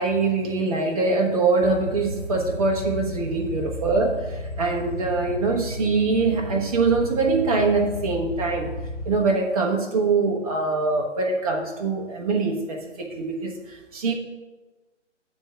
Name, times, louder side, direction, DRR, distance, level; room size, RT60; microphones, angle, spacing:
voice 1, 0.0-8.7 9.0-14.1, right 3 dB, 30° right, 0 dB, 1.0 m, -23 dB
sound 1, 1.6-9.2, equal, 40° left, 1.0 m, -33 dB
9.5 x 3.4 x 6.5 m, 1.2 s
figure-of-eight pair, 140°, 37 cm